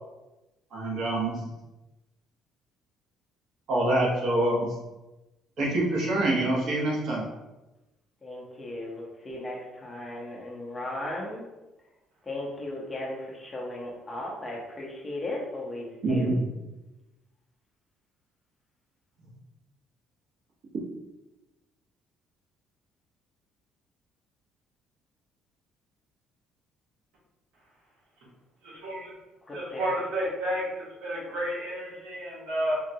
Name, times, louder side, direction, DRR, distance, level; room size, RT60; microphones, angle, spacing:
voice 1, 0.7-1.3 3.7-4.7 5.6-7.2 16.0-16.4, right 1 dB, 55° right, -4 dB, 0.9 m, -25 dB
voice 2, 8.2-11.5 12.2-16.3 29.4-29.9, left 1 dB, 15° left, -4 dB, 0.5 m, -36 dB
voice 3, 28.6-29.1 29.5-32.8, equal, 85° right, -4 dB, 1.0 m, -31 dB
3.6 x 2.2 x 2.7 m, 1.0 s
cardioid pair, 170°, 0 cm